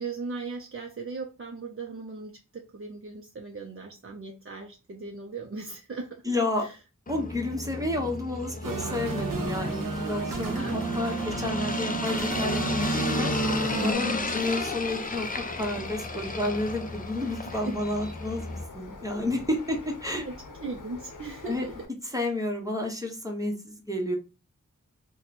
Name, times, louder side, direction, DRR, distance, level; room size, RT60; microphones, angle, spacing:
voice 1, 0.0-6.2 6.6-6.8 10.5-10.8 14.0-14.3 17.5-17.8 20.0-21.7, right 3 dB, 45° right, 1 dB, 0.5 m, -38 dB
voice 2, 6.2-6.7 7.1-13.3 13.8-20.3 21.4-21.7 22.1-24.2, left 1 dB, 10° right, 1 dB, 1.0 m, -31 dB
sound 1, 7.1-18.6, left 2 dB, 25° left, 0.5 m, -33 dB
sound 2, 8.6-13.9, right 4 dB, 85° right, 0.7 m, -32 dB
Bird, 12.3-21.8, left 3 dB, 75° left, 0.7 m, -45 dB
2.9 x 2.2 x 4.0 m, 0.31 s
wide cardioid pair, 45°, 32 cm